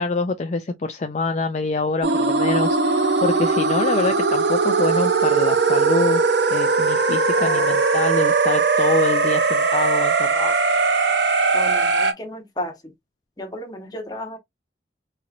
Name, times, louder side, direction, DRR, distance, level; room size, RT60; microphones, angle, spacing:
voice 1, 0.0-6.2 6.5-10.6, left 3 dB, 40° left, 0.4 m, -25 dB
sound 1, 2.0-12.1, right 4 dB, 70° right, 0.7 m, -19 dB
voice 2, 7.3-7.8 11.5-12.9 13.4-14.4, left 1 dB, 20° left, 1.0 m, -33 dB
4.2 x 2.9 x 2.5 m
head